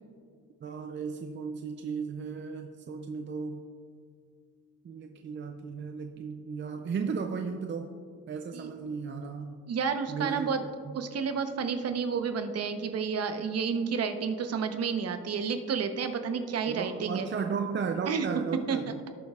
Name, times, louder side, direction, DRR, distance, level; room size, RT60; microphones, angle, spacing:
voice 1, 0.6-3.7 4.8-7.9 8.3-9.6 10.1-11.0 16.7-19.0, right 5 dB, 40° right, 5 dB, 0.5 m, -35 dB
voice 2, 9.7-10.6 10.9-17.3 18.1-18.3 18.7-18.8, right 6 dB, 55° right, 8 dB, 0.9 m, -30 dB
18.0 x 6.5 x 2.4 m, 2.2 s
cardioid pair, 90°, 30 cm